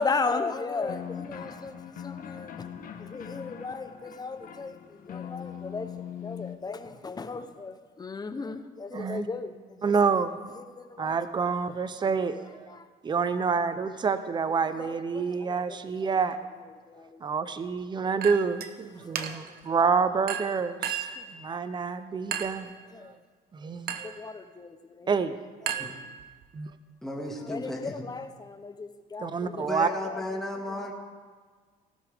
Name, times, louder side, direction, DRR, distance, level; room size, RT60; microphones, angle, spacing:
voice 1, 0.0-2.7 3.0-5.9 6.2-10.2 10.6-11.8 12.7-12.9 14.6-16.2 16.9-17.2 19.0-19.5 22.9-23.2 24.0-25.1 25.6-25.9 27.2-30.2, left 4 dB, 25° left, 9 dB, 0.9 m, -36 dB
sound 1, 0.8-6.6, left 8 dB, 55° left, 1.3 m, -41 dB
voice 2, 8.9-9.3 9.8-10.4 11.0-12.8 13.0-16.4 17.2-22.7 23.5-24.2 25.1-25.4 25.7-25.9 29.2-29.9, right 5 dB, 25° right, 12 dB, 0.7 m, -28 dB
Chink clink, 18.2-18.7 19.2-19.6 20.3-21.3 22.3-22.7 23.9-24.2 25.7-26.5, right 9 dB, 65° right, 1.0 m, -34 dB
voice 3, 27.0-28.0 29.7-30.9, left 1 dB, ahead, -1 dB, 2.1 m, -34 dB
19.0 x 12.0 x 3.6 m, 1.5 s
cardioid pair, 110°, 17 cm